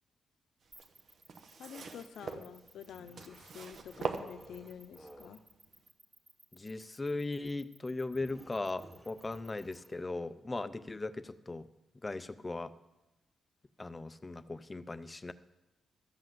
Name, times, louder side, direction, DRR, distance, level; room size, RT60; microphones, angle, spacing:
sound 1, 0.6-4.9 5.7-5.8, right 5 dB, 55° right, 1.0 m, -42 dB
sound 2, 0.7-9.9, right 2 dB, 30° right, 1.4 m, -60 dB
voice 1, 1.6-5.4, left 8 dB, 80° left, 10 dB, 0.8 m, -49 dB
sound 3, 2.9-5.5 8.1-10.4, right 1 dB, 15° right, 1.1 m, -57 dB
voice 2, 6.5-11.7 12.0-12.7 13.8-15.3, left 2 dB, 20° left, 14 dB, 0.5 m, -38 dB
13.0 x 7.8 x 7.6 m, 1.0 s
wide cardioid pair, 135°, 0 cm